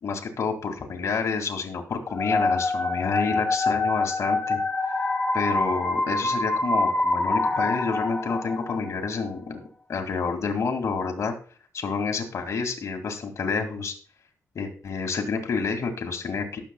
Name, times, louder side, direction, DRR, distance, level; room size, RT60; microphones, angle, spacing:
voice 1, 0.0-4.6 5.3-9.6 9.9-11.3 11.7-13.9 14.5-16.6, left 5 dB, 65° left, 3 dB, 2.3 m, -28 dB
sound 1, 2.2-9.0, left 2 dB, 30° left, 2.6 m, -26 dB
17.5 x 7.4 x 2.3 m, 0.39 s
cardioid pair, 105°, 5 cm